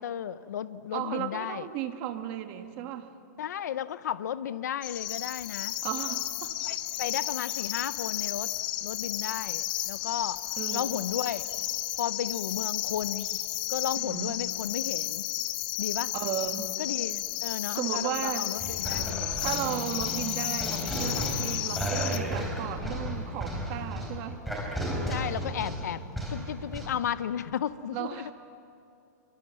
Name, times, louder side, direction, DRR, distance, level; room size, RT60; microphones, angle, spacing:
voice 1, 0.0-1.7 3.4-5.8 6.6-8.5 8.8-10.4 10.7-11.4 12.0-13.4 13.7-15.2 15.8-16.1 16.8-19.3 25.1-26.0 26.3-28.3, left 10 dB, 70° left, 15 dB, 0.7 m, -34 dB
voice 2, 0.9-3.1 5.8-6.5 10.6-11.0 14.0-14.4 16.1-16.7 17.7-18.5 19.4-24.4 27.9-28.3, right 11 dB, 25° right, 7 dB, 1.4 m, -35 dB
sound 1, 4.8-22.2, left 15 dB, 30° left, 0.8 m, -33 dB
sound 2, 18.6-26.9, equal, ahead, 3.6 m, -34 dB
27.0 x 24.5 x 7.7 m, 2.8 s
supercardioid pair, 180°, 10 cm